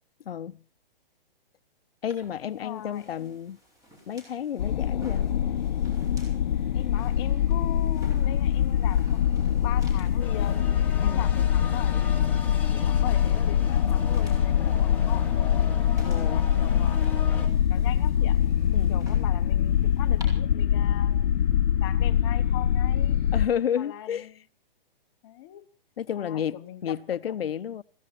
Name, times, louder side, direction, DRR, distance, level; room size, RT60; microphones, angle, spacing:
voice 1, 0.3-0.6 2.0-3.6 4.1-5.3 11.0-11.3 16.0-16.5 18.7-19.0 23.3-24.3 26.0-27.8, left 9 dB, 80° left, 0.8 m, -31 dB
sound 1, 2.1-20.2, equal, 10° right, 4.8 m, -52 dB
voice 2, 2.5-3.4 6.7-10.7 11.0-12.2 12.7-15.7 16.2-18.4 18.9-21.3 21.8-23.2 23.8-24.3 25.2-25.6 26.2-27.5, left 14 dB, 25° left, 1.2 m, -40 dB
sound 2, 4.6-23.5, left 9 dB, 50° left, 1.0 m, -24 dB
sound 3, 10.2-17.5, left 4 dB, 5° left, 2.1 m, -39 dB
16.0 x 15.5 x 5.9 m
hypercardioid pair, 160°, 29 cm